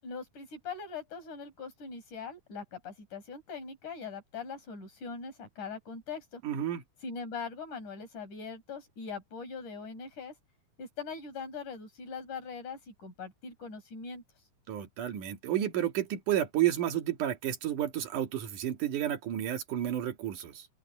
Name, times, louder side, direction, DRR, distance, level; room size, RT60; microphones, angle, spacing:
voice 1, 0.0-6.4 7.0-10.4 10.8-14.2, left 5 dB, 80° left, 7.4 m, -41 dB
voice 2, 6.4-6.8 14.7-20.7, right 11 dB, 85° right, 3.4 m, -31 dB
open air
omnidirectional pair, 3.5 m